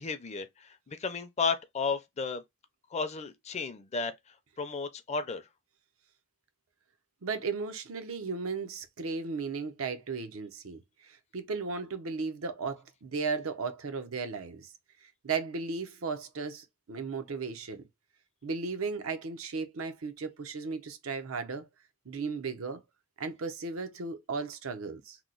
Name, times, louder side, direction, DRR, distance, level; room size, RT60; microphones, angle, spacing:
voice 1, 0.0-2.4 2.9-5.5, left 4 dB, 30° left, 0.4 m, -34 dB
voice 2, 7.2-14.7 15.2-17.8 18.4-21.7 22.1-22.8 23.2-25.2, right 4 dB, 80° right, 0.6 m, -35 dB
3.0 x 2.0 x 3.8 m
head